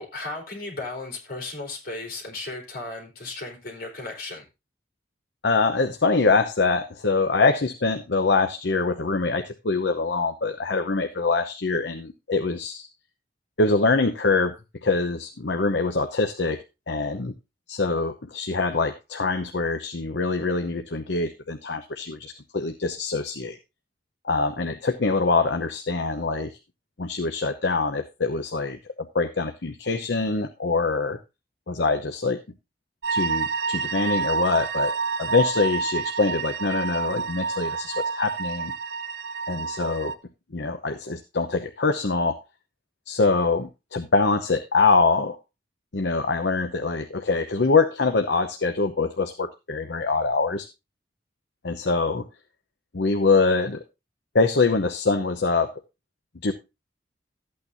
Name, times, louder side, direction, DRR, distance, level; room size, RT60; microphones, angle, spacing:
voice 1, 0.0-4.4, left 2 dB, 55° left, 0 dB, 4.1 m, -35 dB
voice 2, 5.4-12.9 13.6-14.5 14.8-17.3 17.7-23.6 24.2-26.6 27.0-31.2 31.7-32.4 33.1-34.9 35.2-38.7 39.5-40.1 40.5-42.4 43.1-45.4 45.9-50.7 51.6-52.2 52.9-53.8 54.3-55.8 56.4-56.5, left 3 dB, 70° left, 7 dB, 0.8 m, -24 dB
sound 1, 33.0-40.1, right 5 dB, 75° right, 0.9 m, -28 dB
13.5 x 8.7 x 2.6 m, 0.26 s
head